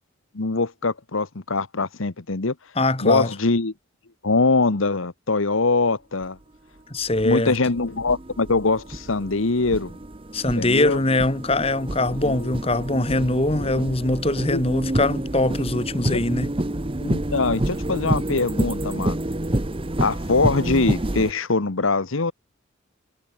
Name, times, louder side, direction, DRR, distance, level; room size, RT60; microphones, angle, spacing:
voice 1, 0.3-2.5 3.0-3.7 4.2-6.4 7.2-10.0 10.6-11.0 12.1-12.5 13.5-13.7 14.5-14.6 16.1-16.2 17.0-19.2 20.0-22.3, left 3 dB, 75° left, 1.2 m, -23 dB
voice 2, 2.8-3.3 6.9-7.5 10.3-16.5, left 2 dB, 30° left, 1.7 m, -22 dB
sound 1, 6.2-6.3 7.0-21.3, right 1 dB, 25° right, 0.9 m, -28 dB
head